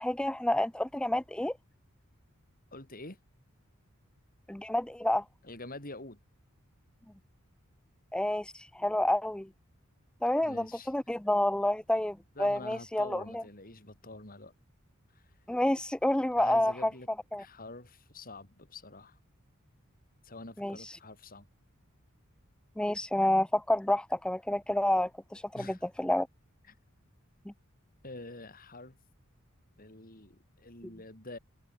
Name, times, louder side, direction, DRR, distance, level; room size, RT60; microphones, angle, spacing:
voice 1, 0.0-1.5 4.5-5.2 8.1-9.5 10.2-13.4 15.5-16.9 17.3-17.4 20.6-21.0 22.8-26.3, left 1 dB, 5° left, 0.4 m, -29 dB
voice 2, 2.7-3.2 5.4-6.2 10.4-10.9 12.3-14.5 15.1-15.2 16.4-17.1 17.4-19.2 20.2-21.5 25.5-25.9 26.7-26.8 28.0-29.0 29.8-31.4, left 2 dB, 40° left, 6.6 m, -46 dB
head